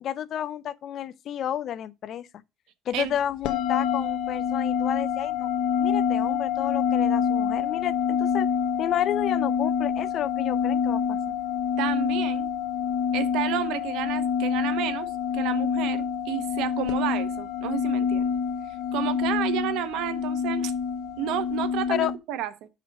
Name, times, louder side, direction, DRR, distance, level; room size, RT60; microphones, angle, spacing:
voice 1, 0.0-2.3 2.9-5.5 5.8-8.5 8.8-11.3 21.9-22.1, left 10 dB, 50° left, 0.4 m, -31 dB
sound 1, 3.4-22.2, left 7 dB, 90° left, 0.9 m, -26 dB
voice 2, 11.8-12.5 13.1-18.3 18.9-20.7 21.2-22.7, right 11 dB, 85° right, 0.9 m, -31 dB
6.0 x 5.0 x 6.4 m
cardioid pair, 155°, 0 cm